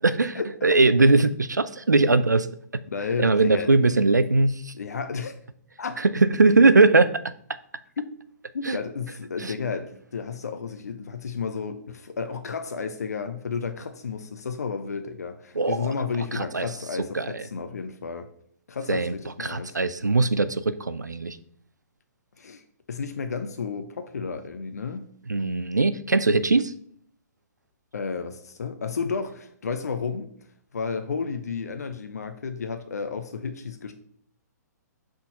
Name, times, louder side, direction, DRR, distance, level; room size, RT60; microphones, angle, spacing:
voice 1, 0.0-2.5 3.2-4.7 6.0-7.1 8.6-8.8 9.4-9.5 15.6-15.9 16.3-16.7 17.1-17.4 18.9-19.1 19.4-21.4 25.3-26.7, right 3 dB, 80° right, 13 dB, 0.5 m, -20 dB
voice 2, 2.9-3.7 4.7-5.3 5.8-6.0 8.5-18.3 18.7-19.8 22.4-22.6 22.9-25.1 27.9-30.3 30.7-33.9, left 5 dB, 60° left, 8 dB, 0.6 m, -32 dB
5.9 x 3.8 x 5.3 m, 0.62 s
figure-of-eight pair, 120°, 9 cm